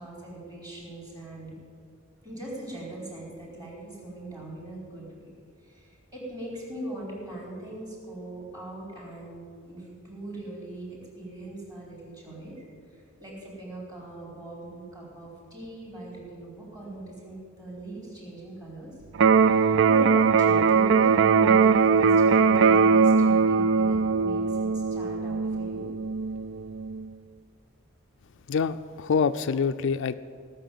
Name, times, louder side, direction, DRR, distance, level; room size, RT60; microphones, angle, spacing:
voice 1, 0.0-1.6 2.2-5.3 5.6-12.6 12.9-18.9 19.3-25.9, right 1 dB, 20° right, -4 dB, 4.4 m, -40 dB
Electric guitar, 19.1-27.1, right 5 dB, 60° right, 0.4 m, -21 dB
voice 2, 28.5-30.2, left 5 dB, 60° left, 10 dB, 0.4 m, -26 dB
18.0 x 6.7 x 9.2 m, 2.1 s
head